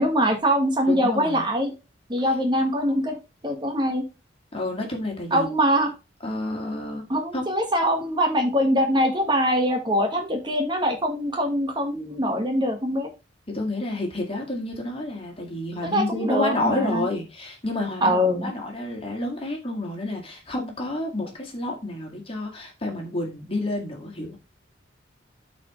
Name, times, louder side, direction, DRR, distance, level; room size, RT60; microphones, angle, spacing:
voice 1, 0.0-1.7 2.1-3.1 3.4-4.0 5.3-5.9 7.1-13.1 15.9-17.1 18.0-18.5, equal, 25° right, 3 dB, 1.5 m, -23 dB
voice 2, 0.9-1.5 2.2-2.4 4.5-5.5 6.2-7.1 7.3-7.5 13.5-24.4, left 1 dB, 30° left, 1 dB, 2.1 m, -29 dB
13.0 x 4.4 x 3.1 m, 0.27 s
head